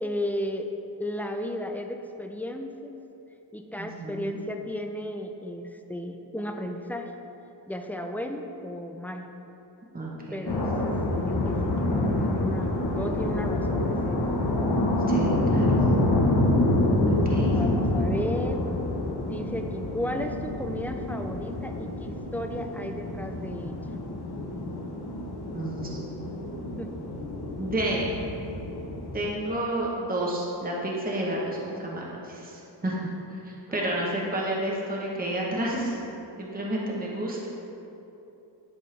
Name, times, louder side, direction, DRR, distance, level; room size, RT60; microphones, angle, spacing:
voice 1, 0.0-0.7 1.0-3.0 3.5-7.1 7.7-9.3 10.3-14.2 17.5-18.6 19.2-23.7 26.8-26.9 33.7-33.9 36.3-36.4, left 1 dB, 5° left, 5 dB, 0.3 m, -34 dB
voice 2, 3.8-4.4 9.9-10.5 10.8-11.0 15.1-15.7 17.1-17.6 25.5-26.0 27.6-28.1 29.1-33.1 33.4-36.0 36.4-37.5, right 1 dB, 20° right, -4 dB, 0.9 m, -31 dB
sound 1, 10.5-29.3, left 1 dB, 60° left, 0.9 m, -27 dB
10.5 x 4.3 x 3.3 m, 3.0 s
wide cardioid pair, 110°, 43 cm